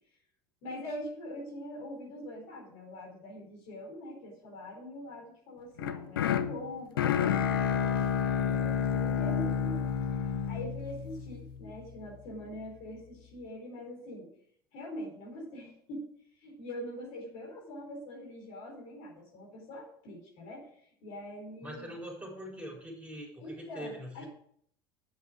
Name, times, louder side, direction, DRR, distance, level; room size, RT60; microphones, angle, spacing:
voice 1, 0.6-9.8 10.5-14.3 14.7-16.0 16.4-21.9 23.4-24.3, left 1 dB, 65° left, 0 dB, 4.2 m, -43 dB
sound 1, 5.8-11.9, left 7 dB, 80° left, 0.6 m, -30 dB
voice 2, 21.6-24.3, equal, 10° right, -1 dB, 4.3 m, -43 dB
8.2 x 7.0 x 6.1 m, 0.66 s
hypercardioid pair, 70°, 12 cm